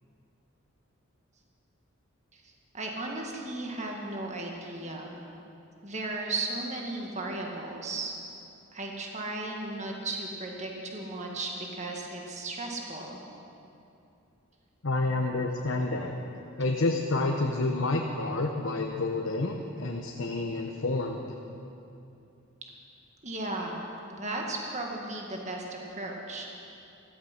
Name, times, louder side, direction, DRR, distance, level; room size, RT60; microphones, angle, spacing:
voice 1, 2.3-5.2 5.8-8.1 8.7-13.2 23.2-26.5, right 2 dB, 35° right, 0 dB, 1.7 m, -35 dB
voice 2, 14.8-16.1 16.6-21.2, left 2 dB, 70° left, 1 dB, 0.9 m, -29 dB
15.0 x 14.0 x 5.9 m, 2.7 s
head